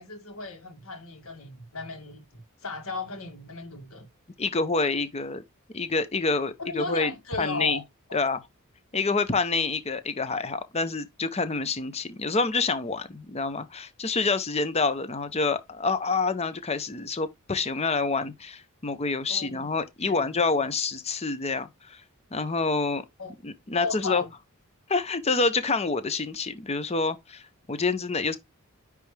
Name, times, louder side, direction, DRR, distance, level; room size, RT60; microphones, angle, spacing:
voice 1, 0.0-2.2 2.6-4.1 6.6-7.8 8.1-8.2 19.3-19.7 20.0-20.3 23.2-23.3 23.7-24.3 28.3-28.4, left 3 dB, 65° left, 2.1 m, -36 dB
voice 2, 4.4-5.4 5.7-7.8 8.1-8.4 8.9-22.0 22.3-23.0 23.4-24.2 24.9-27.4 27.7-28.4, left 4 dB, 30° left, 0.8 m, -27 dB
9.8 x 3.4 x 3.3 m
head